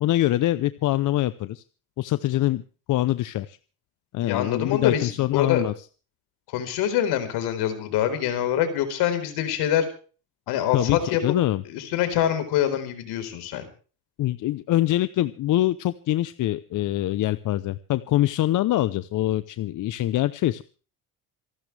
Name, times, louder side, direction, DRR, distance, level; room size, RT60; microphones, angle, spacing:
voice 1, 0.0-1.6 2.0-2.6 2.9-3.6 4.1-5.7 10.7-11.6 14.2-20.6, left 14 dB, 50° left, 14 dB, 0.8 m, -24 dB
voice 2, 4.2-5.6 6.5-9.9 10.5-11.3 11.6-13.6, left 10 dB, 80° left, 8 dB, 4.5 m, -25 dB
27.0 x 12.5 x 3.4 m, 0.37 s
cardioid pair, 135°, 39 cm